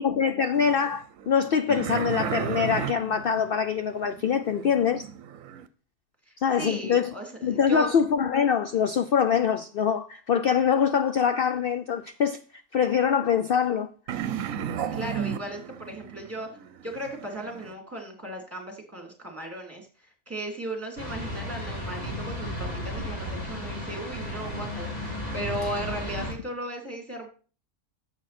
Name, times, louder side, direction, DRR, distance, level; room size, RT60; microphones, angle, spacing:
voice 1, 0.0-5.1 6.4-7.1 7.4-12.4 12.7-13.9, left 7 dB, 70° left, 0.5 m, -24 dB
sound 1, 0.5-5.7 14.1-17.7, right 9 dB, 70° right, 1.1 m, -34 dB
voice 2, 6.6-7.9 14.9-16.5 16.8-19.9 20.3-27.3, right 1 dB, 10° right, 3.0 m, -36 dB
sound 2, 21.0-26.3, left 1 dB, 25° left, 2.8 m, -34 dB
11.0 x 7.5 x 4.3 m
omnidirectional pair, 1.5 m